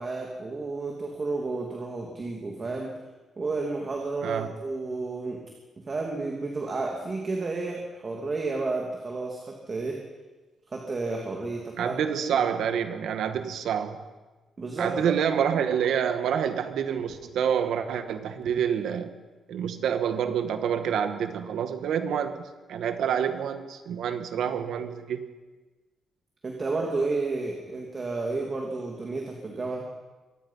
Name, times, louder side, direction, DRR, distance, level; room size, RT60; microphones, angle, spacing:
voice 1, 0.0-2.9 3.4-5.4 5.9-10.0 10.7-12.0 12.3-12.5 14.6-15.2 26.4-29.9, right 3 dB, 30° right, 0 dB, 2.8 m, -31 dB
voice 2, 11.8-14.0 14.8-19.1 19.5-25.2, right 8 dB, 75° right, 8 dB, 1.9 m, -27 dB
24.5 x 19.0 x 5.9 m, 1.2 s
cardioid pair, 145°, 0 cm